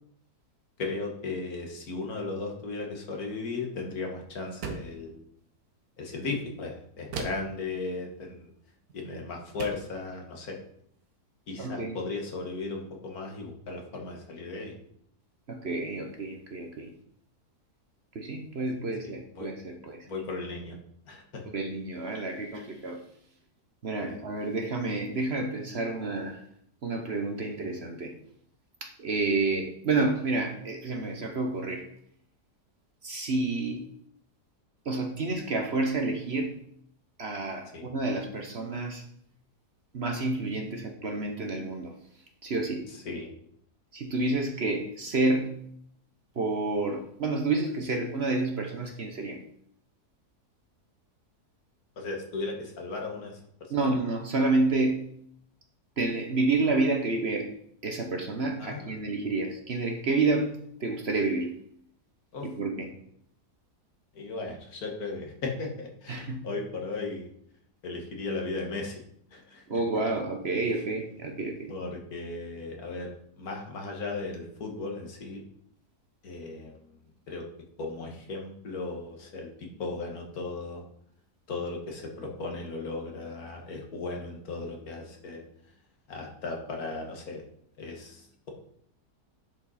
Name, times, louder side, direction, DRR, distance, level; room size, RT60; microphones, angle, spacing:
voice 1, 0.8-5.2 6.0-8.5 8.9-10.6 11.5-14.8 18.6-18.7 19.0-19.5 20.1-20.8 21.1-21.4 24.0-24.2 37.7-37.9 42.9-43.3 52.0-54.0 58.6-58.9 62.3-62.5 64.1-67.3 67.8-69.0 69.3-69.8 71.7-75.4 76.2-76.8 77.3-77.5 77.8-80.8 81.5-85.4 86.1-87.4 87.8-88.5, left 3 dB, 65° left, 1 dB, 1.9 m, -36 dB
sound 1, 4.6-5.0 7.1-7.6 8.9-9.0 9.6-9.9, right 4 dB, 65° right, 1.5 m, -37 dB
voice 2, 11.6-12.0 15.5-16.9 18.1-20.0 21.5-23.0 23.8-26.4 26.8-28.1 28.8-31.9 33.0-33.8 34.8-36.6 37.2-39.0 39.9-41.9 42.4-42.9 43.9-45.6 46.4-49.4 53.7-55.1 56.0-57.5 57.8-60.5 60.8-61.6 62.4-62.9 66.1-66.5 69.7-71.7, right 3 dB, 45° right, 3 dB, 1.2 m, -29 dB
10.5 x 5.3 x 4.2 m, 0.68 s
omnidirectional pair, 1.7 m